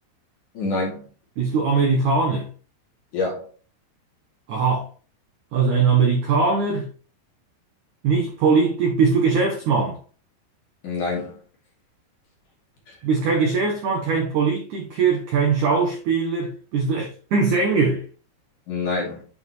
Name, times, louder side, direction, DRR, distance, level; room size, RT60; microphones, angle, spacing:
voice 1, 0.5-1.0 3.1-3.5 10.8-11.4 12.9-13.0 18.7-19.2, left 3 dB, 50° left, 3.6 m, -26 dB
voice 2, 1.4-2.5 4.5-4.9 5.5-6.9 8.0-10.0 13.0-18.0, right 4 dB, 70° right, 1.9 m, -21 dB
8.9 x 5.5 x 3.2 m
omnidirectional pair, 5.2 m